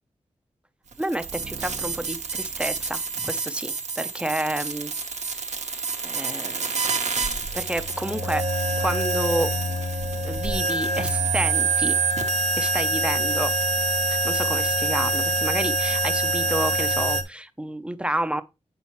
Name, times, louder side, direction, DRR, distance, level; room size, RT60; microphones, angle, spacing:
sound 1, 0.9-17.2, right 2 dB, 75° right, 1.0 m, -26 dB
voice 1, 1.0-4.9 6.0-6.8 7.5-8.4 8.8-9.5 10.2-12.0 12.5-13.5 14.1-18.4, right 1 dB, 10° right, 0.6 m, -30 dB
7.9 x 5.8 x 3.0 m
wide cardioid pair, 80°, 12 cm